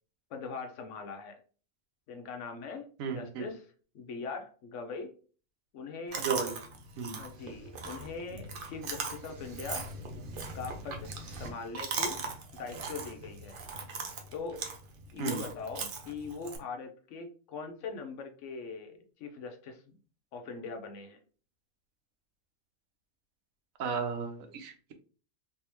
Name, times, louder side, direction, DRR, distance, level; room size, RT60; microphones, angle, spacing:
voice 1, 0.3-1.4 2.1-3.7 3.9-5.1 5.7-6.3 7.1-9.9 10.5-11.1 11.4-12.2 12.5-13.6 14.3-14.6 15.1-20.0 20.3-21.2, left 4 dB, 70° left, 5 dB, 0.9 m, -41 dB
voice 2, 3.0-3.5 6.2-6.6 7.0-7.2 15.2-15.4 23.8-24.9, right 6 dB, 85° right, 6 dB, 1.1 m, -34 dB
Chewing mastication, 6.1-16.6, right 4 dB, 55° right, 0.7 m, -39 dB
3.4 x 2.6 x 2.9 m, 0.40 s
omnidirectional pair, 1.4 m